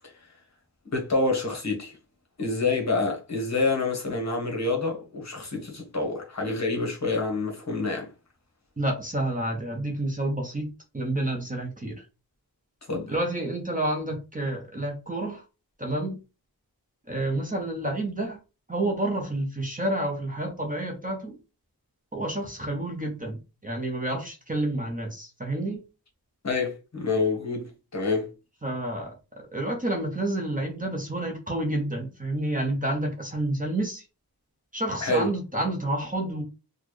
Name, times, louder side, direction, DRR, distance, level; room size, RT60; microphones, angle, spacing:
voice 1, 0.8-2.0 2.4-8.1 12.9-13.1 26.4-28.3 35.0-35.3, left 3 dB, 40° left, 1.2 m, -27 dB
voice 2, 8.8-10.7 10.9-12.0 13.1-15.4 15.8-16.2 17.1-18.4 18.7-21.4 22.1-23.4 23.6-25.8 28.6-34.0 34.7-36.4, right 1 dB, 20° right, 0.8 m, -29 dB
4.1 x 2.3 x 3.1 m
wide cardioid pair, 135°, 41 cm